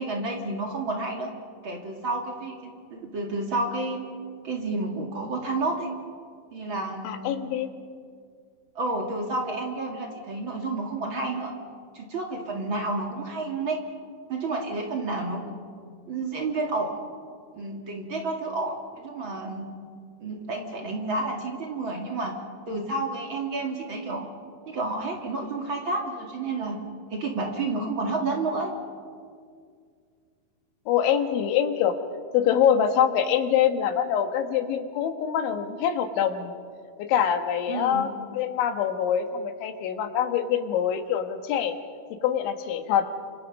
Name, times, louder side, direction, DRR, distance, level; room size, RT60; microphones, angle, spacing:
voice 1, 0.0-1.3 1.6-4.0 4.4-5.9 6.5-7.4 8.8-11.6 11.9-13.8 14.3-15.5 16.1-17.0 17.5-19.7 20.2-22.4 22.7-24.3 24.7-26.8 27.1-28.7 37.7-38.0, right 2 dB, 40° right, 1 dB, 2.0 m, -30 dB
voice 2, 7.0-7.7 30.9-32.0 32.3-36.5 37.1-41.7 42.2-43.0, left 9 dB, 85° left, 7 dB, 3.9 m, -24 dB
29.5 x 26.5 x 5.5 m, 2.1 s
omnidirectional pair, 5.2 m